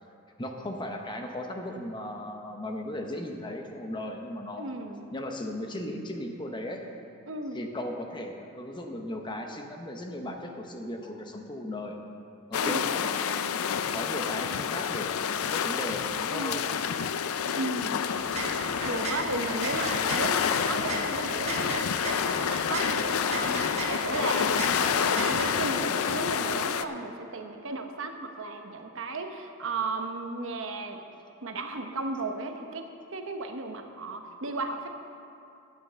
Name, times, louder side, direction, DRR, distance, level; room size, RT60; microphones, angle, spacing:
voice 1, 0.4-4.7 5.1-6.8 7.5-12.0 12.5-13.6 13.9-16.6, left 1 dB, 20° left, 3 dB, 0.9 m, -37 dB
voice 2, 4.6-5.1 7.3-7.7 12.6-12.8 16.3-16.7 17.5-18.0 18.8-31.0 31.4-32.8 33.1-34.9, right 3 dB, 60° right, 5 dB, 0.9 m, -35 dB
sound 1, 12.5-26.8, left 7 dB, 75° left, 0.4 m, -29 dB
sound 2, 18.1-25.5, right 2 dB, 30° right, 1.1 m, -36 dB
9.7 x 9.0 x 6.8 m, 2.7 s
head